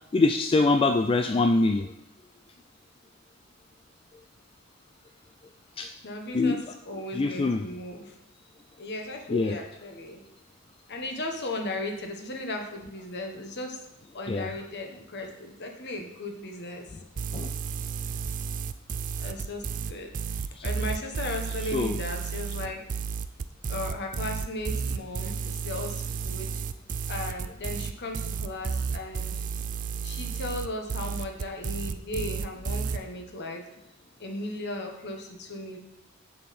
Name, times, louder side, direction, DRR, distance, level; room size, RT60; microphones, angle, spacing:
voice 1, 0.1-1.9 5.8-5.9 6.3-6.6 7.1-7.7 9.3-9.6 14.3-14.5 17.3-17.5 20.6-20.7 21.7-22.0, left 3 dB, 25° left, 6 dB, 0.3 m, -24 dB
voice 2, 6.0-6.6 6.8-8.1 8.8-10.2 10.9-13.8 14.1-16.9 19.2-22.8 23.7-26.6 27.1-29.4 30.0-33.7 34.2-35.8, left 2 dB, 55° left, 3 dB, 1.3 m, -36 dB
sound 1, 17.2-33.0, right 5 dB, 40° right, 0.4 m, -32 dB
7.7 x 7.4 x 4.3 m, 0.82 s
head